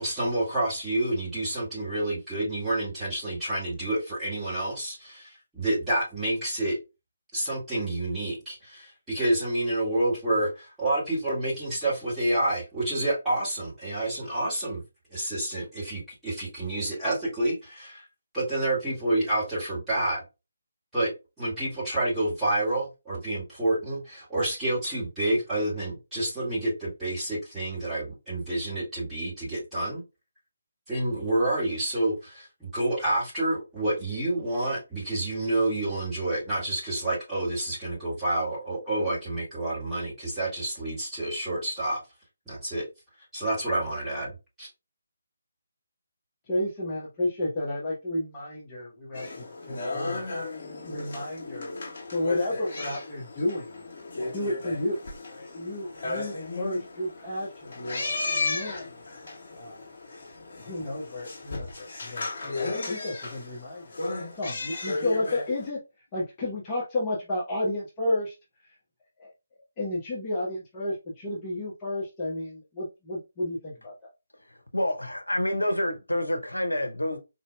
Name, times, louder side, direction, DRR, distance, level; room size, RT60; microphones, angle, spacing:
voice 1, 0.0-6.8 7.3-14.8 15.1-18.0 18.3-20.2 20.9-30.0 30.9-42.0 42.5-42.9 43.3-44.3 44.6-44.7, right 1 dB, 5° right, 1.8 m, -28 dB
voice 2, 46.5-50.5 50.9-51.7 52.1-53.7 54.2-55.0 55.3-57.7 58.3-59.0 59.6-59.9 60.6-64.0 64.4-65.8 66.1-68.3 69.2-69.3 69.8-73.9, left 1 dB, 20° left, 0.9 m, -31 dB
sound 1, 49.1-65.7, left 3 dB, 40° left, 1.4 m, -35 dB
voice 3, 74.5-77.2, left 1 dB, 80° left, 0.7 m, -28 dB
4.2 x 2.7 x 2.2 m
figure-of-eight pair, 145°, 0 cm